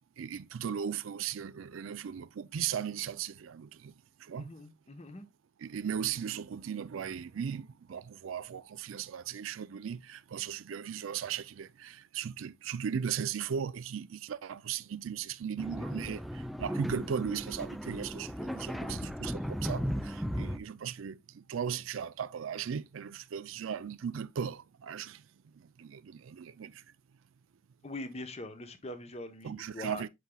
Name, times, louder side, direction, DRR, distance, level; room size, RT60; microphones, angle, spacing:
voice 1, 0.2-3.9 4.2-4.5 5.6-25.2 25.8-26.8 29.4-30.1, right 8 dB, 90° right, 0.4 m, -37 dB
voice 2, 4.3-5.3 18.8-19.1 27.8-30.0, left 2 dB, 35° left, 0.9 m, -43 dB
sound 1, 15.6-20.6, equal, ahead, 0.4 m, -36 dB
8.0 x 6.1 x 2.2 m
head